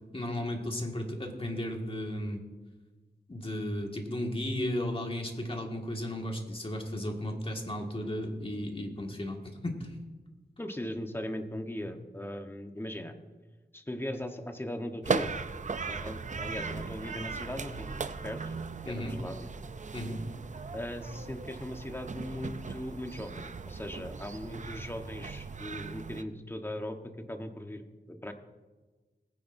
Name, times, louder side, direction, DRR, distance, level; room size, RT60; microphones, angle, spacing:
voice 1, 0.1-2.4 3.3-10.0 18.9-19.2 19.9-20.2, left 1 dB, 30° left, 1 dB, 1.9 m, -34 dB
voice 2, 10.6-13.1 13.7-15.3 15.9-18.5 18.9-19.5 20.7-27.0 27.3-28.3, left 1 dB, 15° left, 5 dB, 1.1 m, -39 dB
sound 1, 15.0-26.2, right 4 dB, 45° right, 0.5 m, -38 dB
19.5 x 9.7 x 2.7 m, 1.3 s
wide cardioid pair, 75°, 18 cm